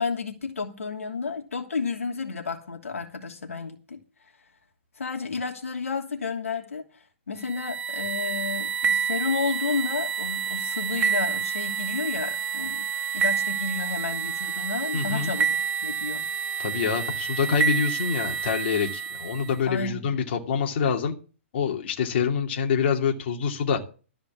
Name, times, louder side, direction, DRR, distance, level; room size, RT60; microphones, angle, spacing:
voice 1, 0.0-4.0 5.0-6.8 7.3-12.9 13.1-16.2 19.6-20.1, left 5 dB, 90° left, 2.9 m, -31 dB
sound 1, 7.4-19.6, right 7 dB, 20° right, 1.2 m, -28 dB
voice 2, 14.9-15.3 16.6-21.1 21.5-23.8, left 6 dB, 55° left, 2.7 m, -26 dB
14.0 x 5.1 x 8.4 m
hypercardioid pair, 135°, 7 cm